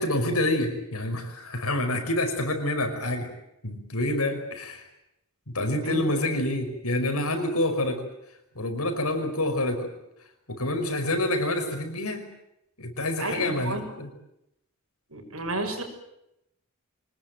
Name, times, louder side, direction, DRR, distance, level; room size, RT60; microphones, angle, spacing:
voice 1, 0.0-3.3 3.6-4.9 5.5-8.1 8.6-9.9 10.5-12.3 12.8-14.1, left 1 dB, 85° left, 6 dB, 5.6 m, -27 dB
voice 2, 13.2-14.0 15.1-15.8, right 2 dB, 75° right, 5 dB, 6.4 m, -32 dB
25.0 x 20.0 x 9.1 m, 0.83 s
head